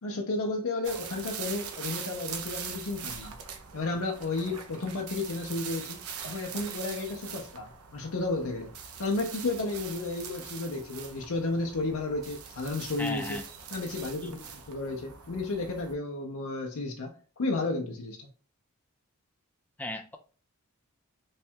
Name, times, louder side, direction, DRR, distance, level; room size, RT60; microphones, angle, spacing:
voice 1, 0.0-3.3 3.7-8.7 9.0-13.4 13.7-18.3, left 2 dB, 75° left, 0.6 m, -33 dB
sound 1, 0.8-15.9, right 7 dB, 80° right, 0.6 m, -42 dB
voice 2, 13.0-13.4 19.8-20.2, left 2 dB, 5° left, 0.3 m, -35 dB
3.2 x 2.3 x 4.3 m
head